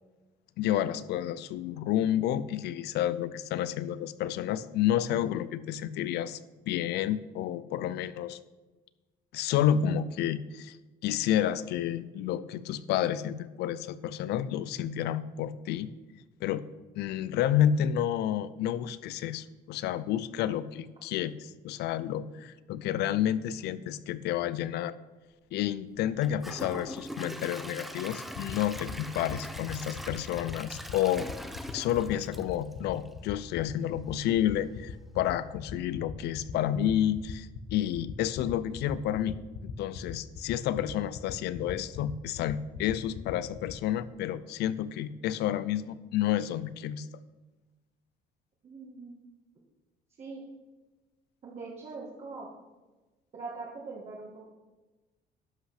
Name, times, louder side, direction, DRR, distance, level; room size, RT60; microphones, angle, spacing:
voice 1, 0.6-6.4 6.7-8.4 9.3-10.8 11.0-15.9 16.4-16.6 17.0-24.9 25.5-31.3 31.7-39.4 39.8-47.1, left 11 dB, 80° left, 16 dB, 0.6 m, -30 dB
Gurgling / Toilet flush / Trickle dribble, 26.2-33.2 33.6-33.7 34.2-34.3, equal, ahead, 0.8 m, -42 dB
sound 1, 28.3-43.7, left 9 dB, 60° left, 1.1 m, -40 dB
voice 2, 48.6-49.2 50.2-50.4 51.4-52.5 53.3-54.5, right 4 dB, 40° right, -5 dB, 2.0 m, -42 dB
11.5 x 5.8 x 5.8 m, 1.2 s
cardioid pair, 110°, 17 cm